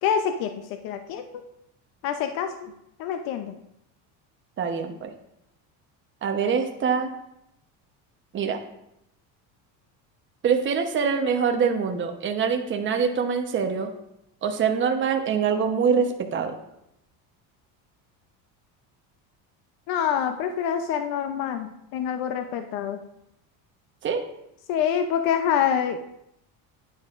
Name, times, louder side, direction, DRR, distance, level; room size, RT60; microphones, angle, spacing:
voice 1, 0.0-0.5 0.8-1.2 2.0-2.7 3.0-3.5 19.9-23.0 24.7-26.0, left 8 dB, 65° left, 7 dB, 0.7 m, -26 dB
voice 2, 4.6-5.1 6.2-7.1 8.3-8.6 10.4-13.9 14.4-16.5 24.0-24.3, right 6 dB, 30° right, 4 dB, 1.0 m, -24 dB
9.6 x 9.6 x 2.5 m, 0.82 s
cardioid pair, 150°, 39 cm